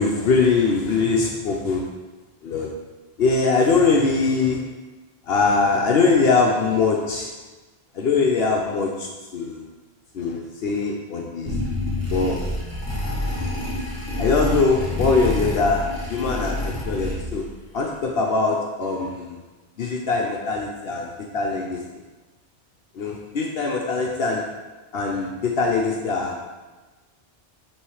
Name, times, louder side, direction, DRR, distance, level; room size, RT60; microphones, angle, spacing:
voice 1, 0.0-1.9 2.4-2.7 3.2-4.6 5.3-7.3 7.9-9.7 10.1-11.6 12.1-12.4 14.2-15.8 16.1-17.5 17.7-19.4 19.8-22.0 22.9-24.4 24.9-26.4, left 4 dB, 65° left, 0 dB, 0.9 m, -22 dB
sound 1, 11.5-17.5, left 1 dB, 20° right, 2.0 m, -27 dB
8.7 x 3.1 x 4.7 m, 1.2 s
omnidirectional pair, 1.1 m